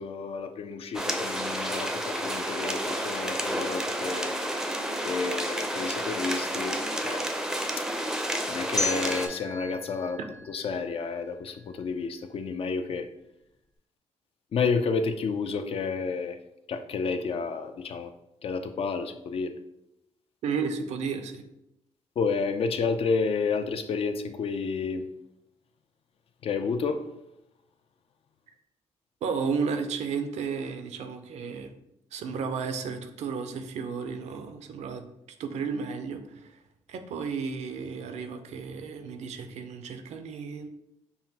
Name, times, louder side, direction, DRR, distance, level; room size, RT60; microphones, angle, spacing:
voice 1, 0.0-4.4 5.0-7.3 7.8-7.9 8.5-10.2 10.5-13.1 14.5-16.4 16.7-18.1 18.4-19.5 22.2-25.0 26.4-27.0, left 5 dB, 55° left, 9 dB, 0.4 m, -30 dB
sound 1, 0.9-9.3, right 1 dB, 5° right, 0.5 m, -30 dB
sound 2, 8.8-11.7, left 1 dB, 30° left, 0.9 m, -35 dB
voice 2, 20.4-21.4 29.2-31.7 32.1-35.0 35.4-36.6 36.9-40.7, right 5 dB, 75° right, 7 dB, 0.5 m, -33 dB
5.5 x 2.1 x 2.8 m, 0.83 s
cardioid pair, 80°, 12 cm